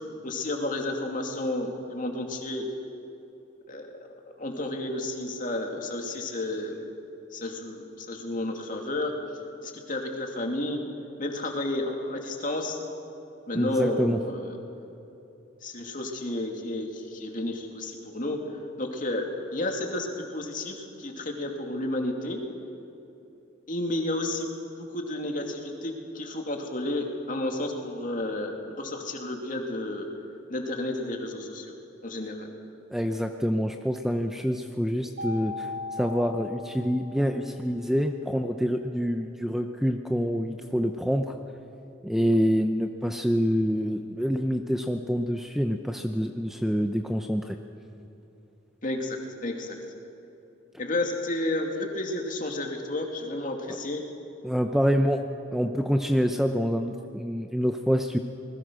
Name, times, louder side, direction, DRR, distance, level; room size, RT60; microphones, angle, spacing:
voice 1, 0.2-2.7 3.7-3.9 4.4-6.8 7.3-9.1 9.6-10.8 11.2-12.8 13.5-14.6 15.6-18.4 18.8-22.4 23.7-24.5 24.8-30.1 30.5-31.7 32.0-32.5 48.8-49.8 50.8-54.0, left 1 dB, 40° left, 2 dB, 2.7 m, -31 dB
voice 2, 13.5-14.2 32.9-41.3 42.0-47.6 54.4-55.2 55.5-58.2, equal, ahead, 5 dB, 0.7 m, -26 dB
Mallet percussion, 35.2-37.4, left 3 dB, 60° right, 4.4 m, -37 dB
27.0 x 20.5 x 6.3 m, 2.9 s
head